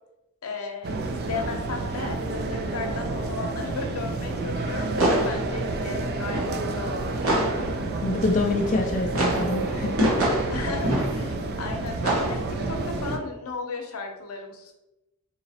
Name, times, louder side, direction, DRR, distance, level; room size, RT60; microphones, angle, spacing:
voice 1, 0.4-7.4 10.5-14.7, left 4 dB, 75° left, 3 dB, 0.7 m, -35 dB
sound 1, 0.8-13.2, right 2 dB, 45° right, 0.3 m, -30 dB
sound 2, 4.1-8.1 8.5-11.6 12.0-13.3, right 1 dB, 65° right, 1.0 m, -27 dB
voice 2, 8.0-10.4, left 2 dB, 35° left, 0 dB, 0.3 m, -26 dB
3.9 x 2.9 x 2.7 m, 0.94 s
head